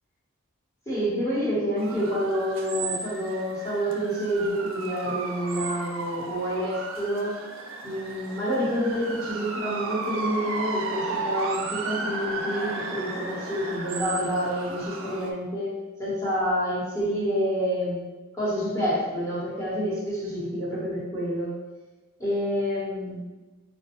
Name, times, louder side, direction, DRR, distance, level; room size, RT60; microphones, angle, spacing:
voice 1, 0.9-7.3 7.8-15.7 16.0-18.0 18.4-21.5 22.2-23.2, equal, 15° left, -9 dB, 1.0 m, -28 dB
sound 1, 1.8-15.3, right 3 dB, 70° right, 0.4 m, -34 dB
3.3 x 2.2 x 2.9 m, 1.2 s
head